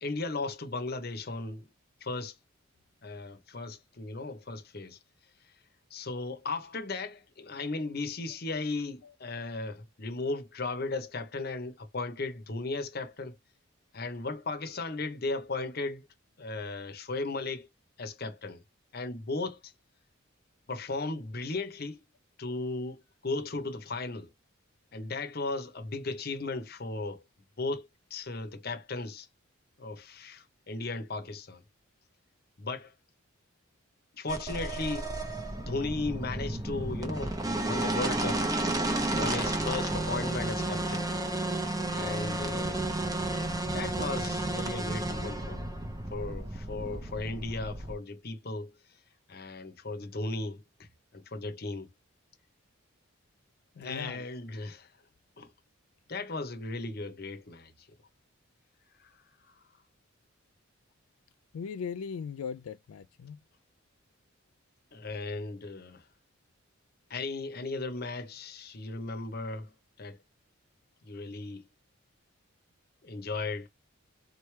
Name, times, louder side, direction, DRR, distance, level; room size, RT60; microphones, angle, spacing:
voice 1, 0.0-1.7 2.0-2.4 3.0-5.0 5.9-13.4 13.9-16.1 16.4-17.7 18.0-18.6 18.9-19.7 20.7-22.0 22.4-24.3 24.9-27.2 27.6-29.3 29.8-31.6 32.6-32.9 34.1-35.1 35.6-37.3 37.6-38.4 39.1-41.1 41.9-42.9 43.7-45.7 46.1-48.7 49.3-51.9 53.8-54.9 55.4-55.5 56.1-57.9 59.0-59.2 59.4-59.6 64.9-66.1 67.1-69.7 70.0-70.2 71.0-71.7 73.0-73.7, left 3 dB, 45° left, 0.9 m, -36 dB
sound 1, 34.3-47.9, right 2 dB, 15° right, 0.7 m, -32 dB
voice 2, 53.8-54.2 61.5-63.4, left 6 dB, 90° left, 0.3 m, -38 dB
4.2 x 3.2 x 3.2 m
head